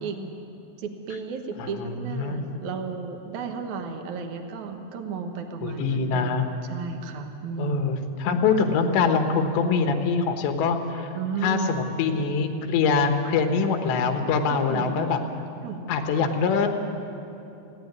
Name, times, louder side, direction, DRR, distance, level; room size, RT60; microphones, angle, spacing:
voice 1, 0.8-6.3 6.7-7.9 11.1-11.9 14.5-15.1 15.6-15.8, right 5 dB, 60° right, 5 dB, 2.1 m, -33 dB
voice 2, 1.6-2.6 5.6-6.5 7.6-11.1 11.4-15.2 15.9-16.7, left 5 dB, 85° left, 6 dB, 3.5 m, -24 dB
19.0 x 16.0 x 9.6 m, 2.8 s
omnidirectional pair, 5.0 m